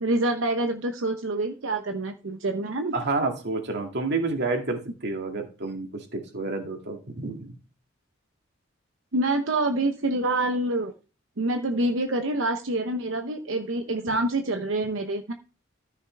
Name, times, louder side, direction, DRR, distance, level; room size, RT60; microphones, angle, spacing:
voice 1, 0.0-2.9 9.1-10.9 11.4-15.3, right 2 dB, 80° right, 5 dB, 0.9 m, -26 dB
voice 2, 2.9-7.6, right 3 dB, 60° right, 3 dB, 2.2 m, -29 dB
13.5 x 6.6 x 3.4 m, 0.34 s
head